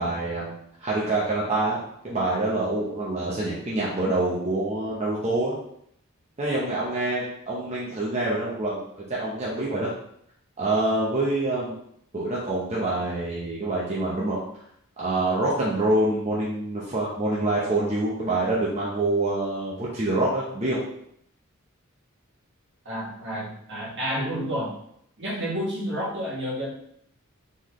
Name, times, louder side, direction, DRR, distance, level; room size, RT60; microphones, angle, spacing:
voice 1, 0.0-1.8 2.0-5.6 6.4-9.9 10.6-11.8 12.1-14.4 15.0-20.8, right 2 dB, 30° right, -7 dB, 0.9 m, -26 dB
voice 2, 22.8-24.7 25.2-26.7, equal, 55° right, -6 dB, 1.7 m, -30 dB
4.3 x 3.8 x 3.1 m, 0.71 s
head